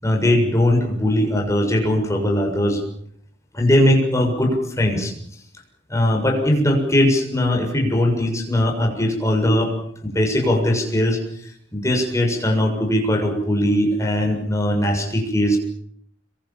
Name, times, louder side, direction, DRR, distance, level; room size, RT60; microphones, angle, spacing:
voice 1, 0.0-2.8 3.5-5.1 5.9-9.7 10.0-11.2 11.7-15.6, left 1 dB, 15° left, 2 dB, 7.0 m, -20 dB
27.0 x 23.0 x 7.4 m, 0.67 s
head